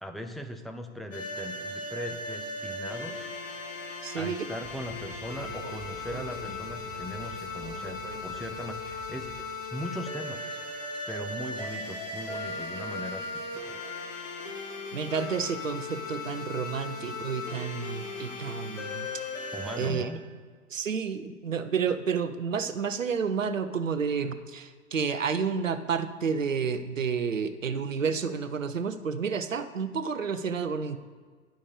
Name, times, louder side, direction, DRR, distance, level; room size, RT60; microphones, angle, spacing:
voice 1, 0.0-3.3 4.1-10.6 11.1-13.8 19.5-20.3, equal, ahead, 5 dB, 0.5 m, -39 dB
sound 1, 1.1-19.9, left 2 dB, 80° left, 2.4 m, -37 dB
voice 2, 4.0-4.5 14.9-19.1 19.8-20.1 20.7-31.0, right 6 dB, 90° right, 11 dB, 0.8 m, -30 dB
Speech, 4.6-9.5, right 5 dB, 50° right, 1.5 m, -47 dB
10.5 x 5.9 x 6.6 m, 1.6 s
figure-of-eight pair, 105°, 38 cm